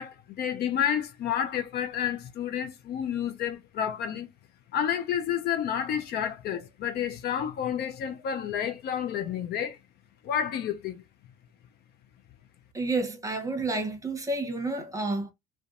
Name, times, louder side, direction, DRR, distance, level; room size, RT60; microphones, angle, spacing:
voice 1, 0.0-4.3 4.7-9.8 10.2-11.0, left 9 dB, 50° left, 0.5 m, -30 dB
voice 2, 12.7-15.3, right 2 dB, 15° right, 0.9 m, -30 dB
2.5 x 2.2 x 2.4 m
supercardioid pair, 80°, 20 cm